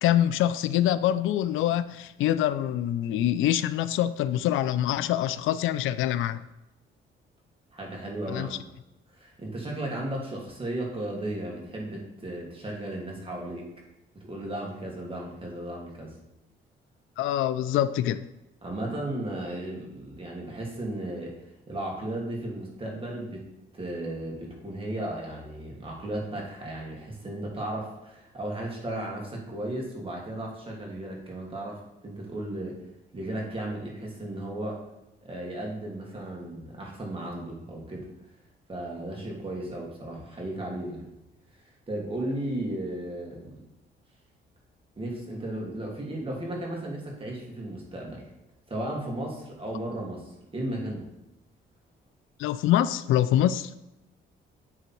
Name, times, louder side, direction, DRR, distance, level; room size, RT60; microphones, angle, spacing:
voice 1, 0.0-6.4 8.3-8.6 17.2-18.3 52.4-53.7, left 12 dB, 85° left, 0.4 m, -25 dB
voice 2, 7.7-8.7 9.1-13.7 14.1-16.1 18.6-21.3 21.7-23.5 23.7-32.8 33.1-34.8 35.2-38.1 38.7-41.1 41.6-43.6 45.0-48.3 48.7-51.1, right 1 dB, 30° right, 2.6 m, -35 dB
9.8 x 3.9 x 4.5 m
cardioid pair, 90°, 20 cm